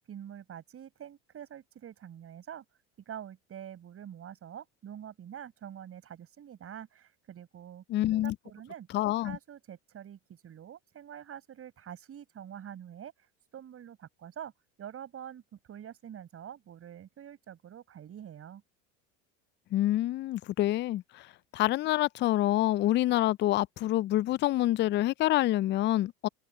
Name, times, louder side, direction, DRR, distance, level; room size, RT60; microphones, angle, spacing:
voice 1, 0.0-2.6 3.1-7.8 8.1-8.9 9.2-13.1 13.5-14.5 14.8-18.6, right 9 dB, 40° right, 6.3 m, -46 dB
voice 2, 7.9-8.3 8.9-9.4 19.7-21.3 21.5-26.3, left 15 dB, 35° left, 0.4 m, -27 dB
hypercardioid pair, 85°, 33 cm